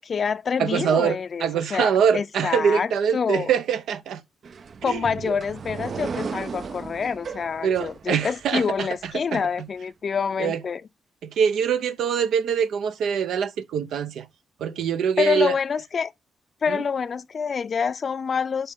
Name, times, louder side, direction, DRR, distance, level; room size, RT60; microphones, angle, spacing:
voice 1, 0.0-3.5 4.8-10.8 15.2-16.1 16.6-18.7, left 6 dB, 45° left, 0.5 m, -27 dB
voice 2, 0.6-4.2 4.8-5.3 7.6-9.4 10.4-10.6 11.2-14.3 14.6-15.5 16.7-16.8, right 7 dB, 85° right, 0.8 m, -24 dB
sound 1, 4.4-9.1, right 5 dB, 45° right, 0.5 m, -36 dB
11.0 x 4.3 x 3.6 m
cardioid pair, 120°, 0 cm